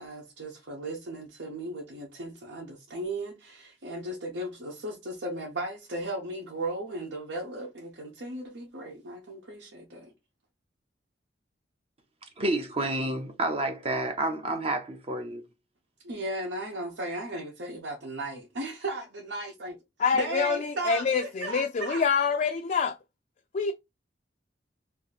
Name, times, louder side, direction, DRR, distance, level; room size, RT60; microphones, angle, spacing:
voice 1, 0.0-10.1 16.0-19.8 20.1-22.0, right 1 dB, 90° right, 0.9 m, -36 dB
voice 2, 12.4-15.4, right 2 dB, 35° right, 0.5 m, -29 dB
voice 3, 20.0-23.0 23.5-23.7, left 5 dB, 45° left, 0.3 m, -26 dB
2.8 x 2.7 x 4.0 m
head